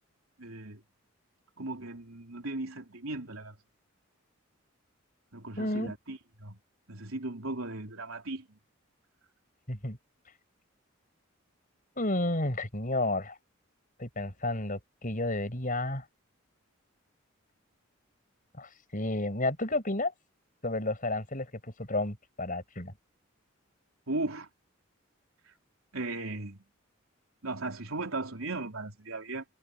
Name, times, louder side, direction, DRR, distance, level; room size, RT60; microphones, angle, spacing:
voice 1, 0.4-0.8 1.6-3.6 5.3-6.6 6.9-8.6 24.1-24.5 25.9-26.6 27.4-29.4, right 2 dB, 80° right, 3.8 m, -37 dB
voice 2, 5.6-5.9 9.7-10.0 12.0-13.4 14.0-16.0 18.6-20.1 20.6-22.9, left 2 dB, 40° left, 6.3 m, -31 dB
head